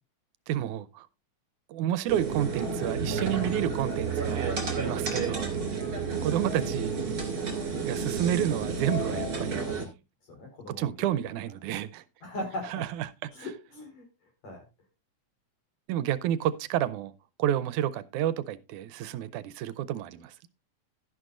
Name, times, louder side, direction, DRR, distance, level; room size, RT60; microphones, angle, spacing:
voice 1, 0.5-1.1 1.7-5.9 6.2-7.0 7.5-9.7 10.8-12.0 12.7-13.1 15.9-17.1 17.4-20.3, right 11 dB, 85° right, 2.1 m, -30 dB
sound 1, 2.1-9.9, right 4 dB, 35° right, 2.9 m, -31 dB
voice 2, 10.3-11.3 12.2-12.7 13.3-14.1 14.4-14.6, left 1 dB, 65° left, 5.6 m, -39 dB
12.5 x 11.0 x 2.5 m
omnidirectional pair, 3.5 m